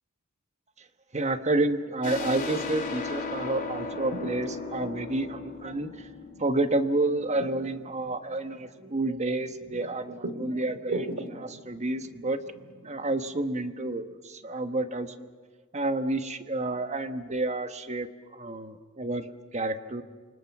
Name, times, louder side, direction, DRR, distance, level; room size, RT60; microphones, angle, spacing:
voice 1, 1.1-5.9 6.4-12.4 12.8-15.3 15.7-20.0, right 2 dB, 30° right, 9 dB, 1.1 m, -30 dB
sound 1, 2.0-7.3, left 4 dB, 40° left, 3.3 m, -36 dB
sound 2, 3.6-13.4, right 2 dB, 65° right, 2.1 m, -42 dB
29.0 x 25.5 x 6.0 m, 1.5 s
head